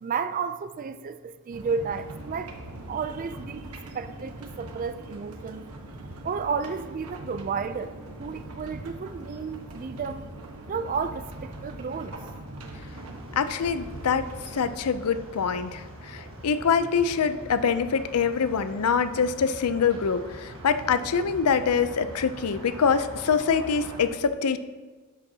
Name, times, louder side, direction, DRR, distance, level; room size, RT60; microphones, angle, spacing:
voice 1, 0.0-2.5 2.9-3.7 3.9-5.6 6.2-10.3 10.7-12.1, right 5 dB, 40° right, 11 dB, 0.3 m, -32 dB
sound 1, 1.5-14.7, right 1 dB, 85° right, 1.3 m, -41 dB
sound 2, 12.8-24.0, right 1 dB, 60° right, 1.5 m, -43 dB
voice 2, 13.4-24.6, left 6 dB, 85° left, 12 dB, 0.5 m, -25 dB
12.0 x 8.1 x 2.8 m, 1.3 s
head